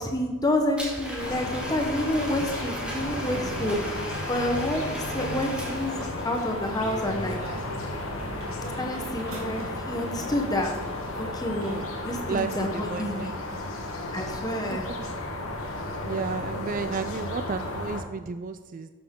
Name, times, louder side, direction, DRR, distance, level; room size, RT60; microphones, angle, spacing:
voice 1, 0.0-4.0 4.3-7.4 8.8-10.7 11.3-11.8 12.0-13.3 14.1-14.9, left 1 dB, 20° left, 2 dB, 1.0 m, -29 dB
Domestic sounds home sounds, 0.8-6.4, equal, 5° right, 2.0 m, -37 dB
sound 1, 1.2-18.0, left 2 dB, 75° left, 1.4 m, -34 dB
voice 2, 3.5-3.9 11.7-11.9 12.3-13.3 14.9-15.0 16.0-18.9, right 5 dB, 40° right, 9 dB, 0.3 m, -33 dB
sound 2, 4.4-12.3, right 1 dB, 75° right, 2.0 m, -42 dB
12.0 x 6.9 x 3.7 m, 1.4 s
head